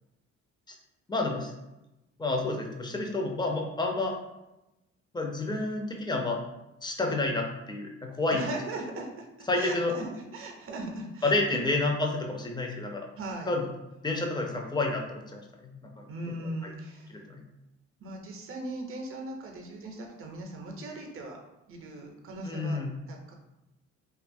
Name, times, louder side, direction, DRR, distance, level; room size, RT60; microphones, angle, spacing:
voice 1, 1.1-1.5 2.2-4.2 5.1-6.4 6.8-8.5 9.5-9.9 11.2-13.1 13.5-13.6 14.0-16.0 17.1-17.4 22.4-22.9, left 2 dB, 15° left, 1 dB, 0.4 m, -29 dB
voice 2, 8.3-11.4 13.1-13.5 16.1-17.2 18.0-21.4 21.7-22.8 23.1-23.3, right 2 dB, 45° right, 2 dB, 0.6 m, -39 dB
2.6 x 2.3 x 2.6 m, 0.95 s
cardioid pair, 90°, 30 cm